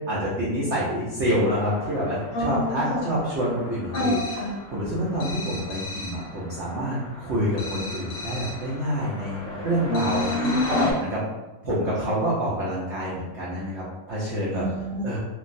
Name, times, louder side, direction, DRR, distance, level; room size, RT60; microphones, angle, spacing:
voice 1, 0.1-4.2 4.7-10.5 11.0-11.2 11.6-14.6 15.0-15.2, equal, 70° right, -7 dB, 0.6 m, -27 dB
sound 1, 1.2-10.9, left 2 dB, 45° right, 1.2 m, -36 dB
voice 2, 2.3-3.1 3.9-4.5 9.9-10.9 14.5-15.2, left 1 dB, 55° left, -7 dB, 0.8 m, -27 dB
sound 2, 3.9-4.6 5.2-6.3 7.6-8.7 9.9-11.1, left 2 dB, 90° left, 1.3 m, -37 dB
3.1 x 2.3 x 2.5 m, 1.1 s
omnidirectional pair, 2.0 m